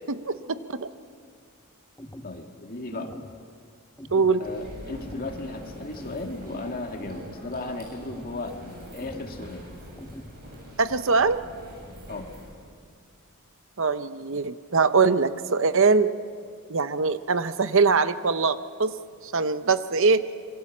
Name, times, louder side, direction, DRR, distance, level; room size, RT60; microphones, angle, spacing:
voice 1, 0.1-0.9 4.1-4.5 10.8-11.5 13.8-16.2 16.7-19.0 19.2-20.3, right 4 dB, 60° right, 12 dB, 0.8 m, -22 dB
sound 1, 2.0-2.4 3.0-3.4 4.0-4.4 5.0-5.4 6.0-6.4 7.0-7.4 8.0-8.4 9.0-9.4 10.0-10.4, equal, 15° left, 1.0 m, -43 dB
voice 2, 2.2-3.1 4.4-8.6 8.9-9.7 12.1-12.3, left 2 dB, 40° left, 3 dB, 2.2 m, -35 dB
sound 2, 4.4-12.5, equal, 45° right, 7.6 m, -43 dB
26.5 x 23.0 x 7.3 m, 2.2 s
head